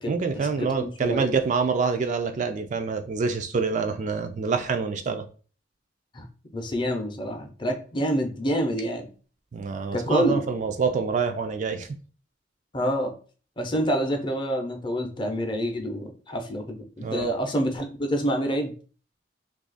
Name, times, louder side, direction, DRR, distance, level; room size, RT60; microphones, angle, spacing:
voice 1, 0.1-5.3 9.5-11.9 17.0-17.3, right 5 dB, 45° right, 0.3 m, -26 dB
voice 2, 0.6-1.3 6.1-6.2 6.5-9.1 9.9-10.4 12.7-13.1 13.6-18.7, equal, 25° left, 0.6 m, -27 dB
2.7 x 2.4 x 3.9 m
head